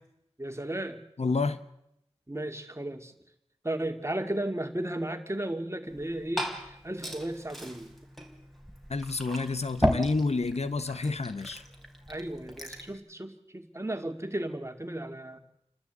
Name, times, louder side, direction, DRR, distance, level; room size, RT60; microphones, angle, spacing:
voice 1, 0.4-1.0 2.3-3.1 3.6-7.9 12.1-15.4, right 1 dB, 25° right, 6 dB, 2.3 m, -34 dB
voice 2, 1.2-1.6 8.9-11.6, left 3 dB, 75° left, 12 dB, 1.0 m, -29 dB
Liquid, 5.9-12.9, equal, ahead, 3.8 m, -36 dB
28.5 x 12.5 x 8.1 m, 0.82 s
wide cardioid pair, 45°, 11 cm